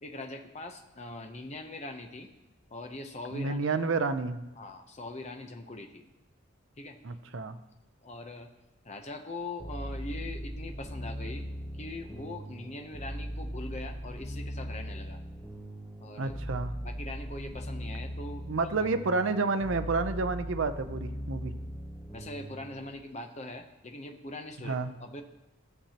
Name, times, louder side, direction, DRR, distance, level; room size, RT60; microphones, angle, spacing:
voice 1, 0.0-2.3 2.7-3.6 4.6-6.1 6.8-7.0 8.0-8.5 8.8-11.4 11.8-15.2 16.0-16.4 16.8-18.7 22.1-25.2, left 2 dB, 30° left, 5 dB, 0.7 m, -42 dB
voice 2, 3.3-4.4 7.0-7.6 16.2-16.7 18.5-21.5 24.6-24.9, right 3 dB, 60° right, 10 dB, 0.5 m, -30 dB
sound 1, 9.6-22.9, equal, ahead, 0.8 m, -39 dB
13.0 x 7.3 x 2.9 m, 1.1 s
head